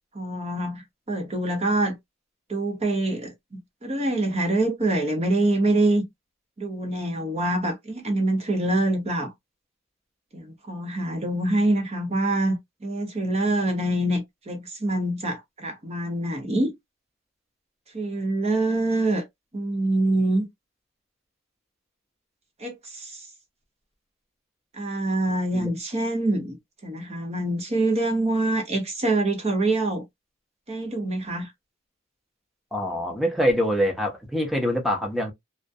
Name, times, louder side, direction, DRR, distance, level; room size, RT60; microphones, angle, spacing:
voice 1, 0.1-2.0 2.5-6.0 6.6-9.3 10.3-16.7 17.9-19.3 19.5-20.5 22.6-23.2 24.7-26.6 26.8-30.0 30.7-31.5, right 2 dB, 30° right, 0.8 m, -25 dB
voice 2, 32.7-35.3, equal, ahead, 0.7 m, -24 dB
2.3 x 2.1 x 2.6 m
head